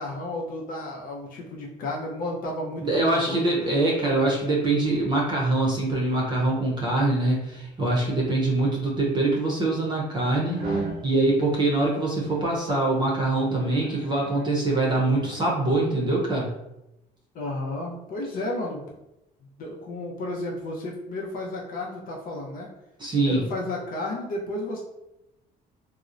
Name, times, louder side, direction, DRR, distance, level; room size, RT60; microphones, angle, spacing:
voice 1, 0.0-3.7 17.3-18.8 19.6-22.7 23.2-24.8, left 2 dB, 55° left, -2 dB, 0.6 m, -32 dB
voice 2, 2.8-16.5 23.0-23.4, right 2 dB, 25° right, -4 dB, 0.6 m, -24 dB
sound 1, 10.5-11.0 12.2-12.6 13.5-14.5 15.2-15.6, right 3 dB, 80° right, 0.7 m, -34 dB
2.8 x 2.0 x 2.4 m, 0.90 s
cardioid pair, 110°, 17 cm